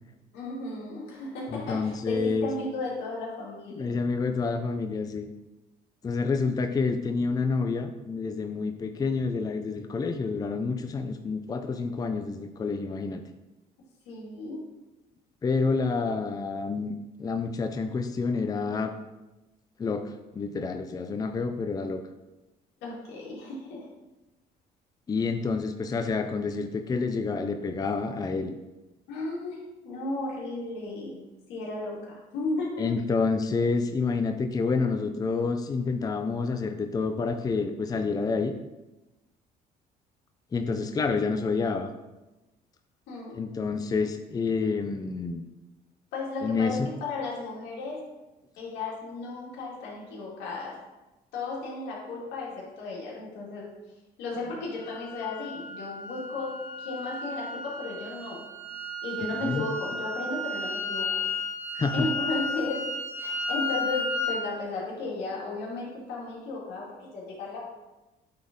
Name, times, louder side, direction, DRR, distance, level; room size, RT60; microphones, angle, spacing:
voice 1, 0.3-3.9 14.1-14.6 22.8-23.9 29.1-29.6 29.8-31.2 31.5-33.0 43.1-43.4 46.1-48.0 48.6-50.8 51.3-53.7 54.2-58.4 59.0-61.2 61.9-62.9 63.2-67.6, left 3 dB, 90° left, -4 dB, 2.3 m, -34 dB
voice 2, 1.5-2.5 3.7-5.3 6.0-13.2 15.4-16.9 17.2-18.9 19.8-22.0 25.1-28.5 32.8-38.5 40.5-41.9 43.3-45.4 46.4-46.9 59.4-59.6 61.7-62.1, left 4 dB, 20° left, 7 dB, 0.5 m, -28 dB
sound 1, 54.7-64.4, left 2 dB, 75° right, 2.2 m, -33 dB
8.6 x 4.0 x 3.8 m, 1.0 s
cardioid pair, 110°, 17 cm